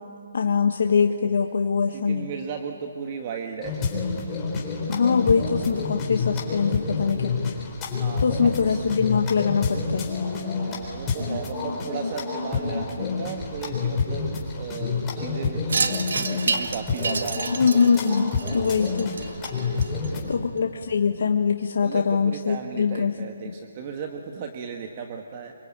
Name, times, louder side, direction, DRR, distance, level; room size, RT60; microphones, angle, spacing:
voice 1, 0.3-2.3 4.9-7.6 8.2-10.1 17.6-19.1 20.3-23.1 23.4-23.5, left 5 dB, 60° left, 4 dB, 1.4 m, -23 dB
voice 2, 1.9-3.8 8.0-8.9 10.4-17.6 18.5-18.8 19.7-20.4 21.8-25.5, right 6 dB, 30° right, 4 dB, 1.5 m, -36 dB
sound 1, 3.6-20.3, left 4 dB, 15° left, 4.0 m, -28 dB
Wind chime, 15.7-20.3, right 4 dB, 75° right, 2.0 m, -29 dB
26.0 x 24.5 x 9.0 m, 2.5 s
hypercardioid pair, 165°, 0 cm